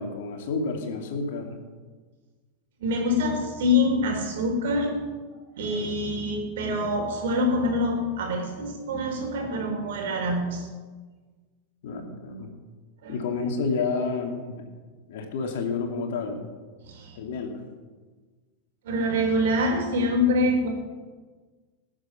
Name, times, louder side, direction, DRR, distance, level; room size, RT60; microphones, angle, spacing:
voice 1, 0.0-1.6 11.8-12.5 13.1-14.7 15.1-16.5 17.2-17.7, left 4 dB, 60° left, 3 dB, 2.5 m, -30 dB
voice 2, 2.8-4.9 5.6-10.7 13.0-13.2 16.8-17.2 18.8-20.7, left 1 dB, 65° right, 1 dB, 3.9 m, -25 dB
19.0 x 7.7 x 6.0 m, 1.4 s
figure-of-eight pair, 90°, 0 cm